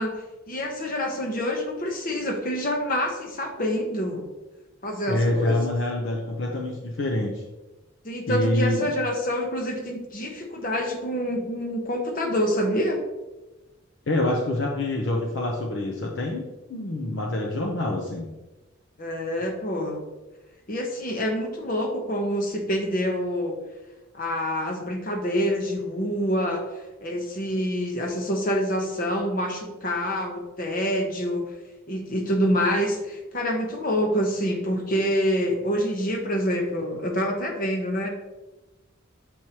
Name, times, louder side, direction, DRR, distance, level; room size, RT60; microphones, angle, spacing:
voice 1, 0.0-4.2 4.8-5.6 8.0-13.0 19.0-20.0 20.7-23.6 24.1-26.6 27.0-31.5 31.9-38.1, equal, 45° left, 3 dB, 0.9 m, -26 dB
voice 2, 5.1-7.4 8.3-8.9 14.1-16.4 16.7-18.3, left 1 dB, 60° left, 0 dB, 0.6 m, -26 dB
7.1 x 4.6 x 2.9 m, 1.1 s
head